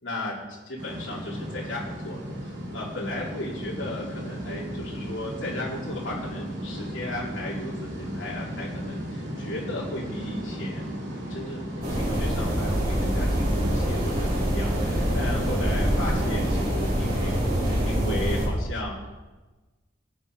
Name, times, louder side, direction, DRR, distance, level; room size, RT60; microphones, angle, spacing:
voice 1, 0.0-10.9 11.3-19.1, left 1 dB, 80° left, -5 dB, 2.9 m, -36 dB
sound 1, 0.8-16.7, equal, 65° right, 2.8 m, -35 dB
winter early morning, 11.8-18.5, equal, 50° right, 4.0 m, -25 dB
17.0 x 8.7 x 4.6 m, 1.2 s
head